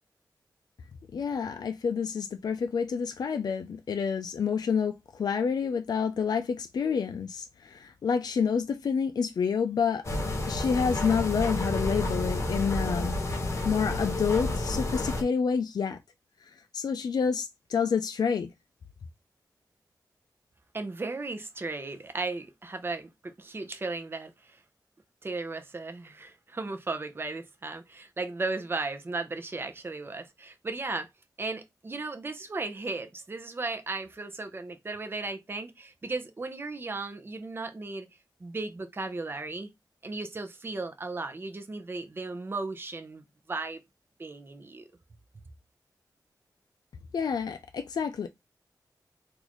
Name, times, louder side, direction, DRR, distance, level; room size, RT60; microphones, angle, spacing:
voice 1, 1.1-10.0 10.5-13.1 13.6-16.0 16.7-18.5 47.1-48.3, left 6 dB, 65° left, 0.3 m, -28 dB
sound 1, 10.0-15.2, left 1 dB, 40° left, 0.9 m, -30 dB
voice 2, 20.7-24.6 25.2-31.1 31.4-38.1 38.4-39.7 40.0-43.8 44.2-44.9, right 3 dB, 30° right, 0.6 m, -36 dB
3.9 x 2.5 x 3.0 m
wide cardioid pair, 90°, 7 cm